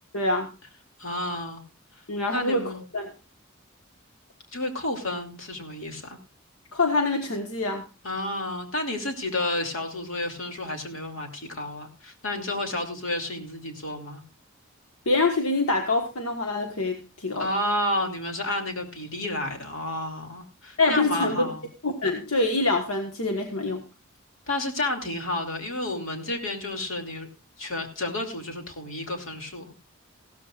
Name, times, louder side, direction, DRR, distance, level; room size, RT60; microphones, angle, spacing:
voice 1, 0.1-0.5 2.1-3.1 6.7-7.8 15.0-17.5 20.8-21.5 21.8-23.8, left 2 dB, 85° left, 3 dB, 1.5 m, -25 dB
voice 2, 1.0-1.6 2.3-2.8 4.5-6.2 8.0-14.2 17.4-21.6 24.5-27.3 27.6-29.7, left 1 dB, 65° left, 3 dB, 2.8 m, -31 dB
16.5 x 13.0 x 2.5 m, 0.31 s
head